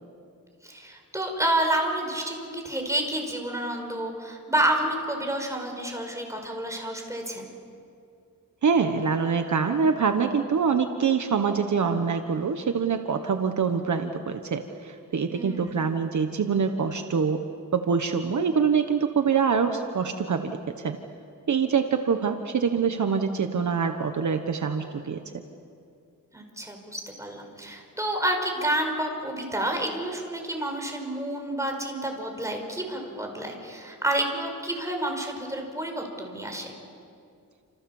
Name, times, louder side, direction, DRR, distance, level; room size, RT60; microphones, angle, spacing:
voice 1, 0.6-7.5 15.3-15.9 26.3-36.7, right 1 dB, 10° right, 2 dB, 5.2 m, -29 dB
voice 2, 8.6-17.4 17.7-21.0 21.5-25.2, right 6 dB, 60° right, 6 dB, 1.3 m, -25 dB
29.5 x 28.0 x 7.3 m, 2.4 s
wide cardioid pair, 135°, 34 cm